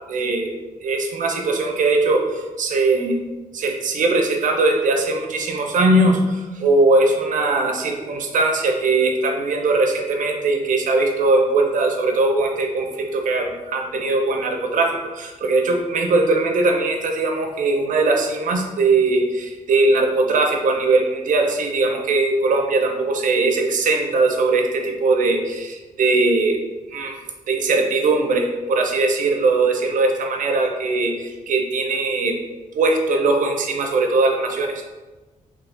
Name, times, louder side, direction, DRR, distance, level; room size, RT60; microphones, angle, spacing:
voice 1, 0.1-0.5 0.8-3.2 3.5-26.6 26.9-27.2 27.5-32.4 32.7-34.8, right 3 dB, 65° right, 3 dB, 0.5 m, -20 dB
3.1 x 2.4 x 3.2 m, 1.2 s
cardioid pair, 100°, 14 cm